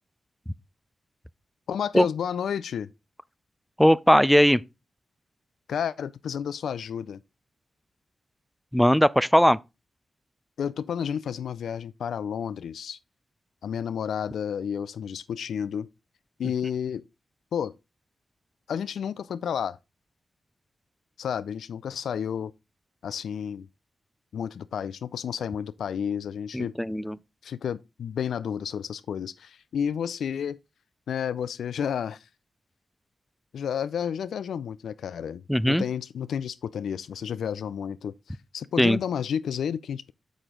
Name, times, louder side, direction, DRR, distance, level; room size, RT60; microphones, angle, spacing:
voice 1, 1.7-2.9 5.7-7.2 10.6-13.0 13.6-15.9 16.4-17.0 17.5-17.7 18.7-19.8 21.2-22.5 23.0-23.7 24.3-26.7 27.4-30.6 31.1-32.2 33.5-40.1, left 8 dB, 85° left, 0.3 m, -31 dB
voice 2, 3.8-4.6 8.7-9.6 26.5-27.2 35.5-35.8 38.8-39.0, equal, 5° left, 0.4 m, -19 dB
6.7 x 6.1 x 3.7 m
supercardioid pair, 45°, 0 cm